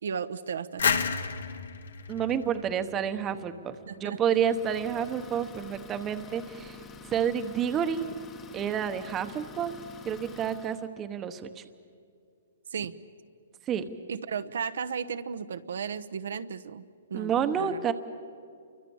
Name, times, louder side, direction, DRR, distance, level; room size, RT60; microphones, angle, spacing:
voice 1, 0.0-1.0 3.9-4.2 12.7-12.9 14.1-16.8 17.1-17.9, right 6 dB, 75° right, 10 dB, 1.0 m, -35 dB
sound 1, 0.8-3.5, left 6 dB, 85° left, 2.0 m, -31 dB
voice 2, 2.1-6.8 7.1-8.1 8.5-9.7 10.0-11.6 13.7-13.8 17.1-17.9, right 8 dB, 15° right, 9 dB, 1.1 m, -29 dB
Idling, 4.3-10.9, left 4 dB, 15° left, 1.2 m, -47 dB
29.0 x 24.0 x 7.2 m, 2.3 s
hypercardioid pair, 160°, 0 cm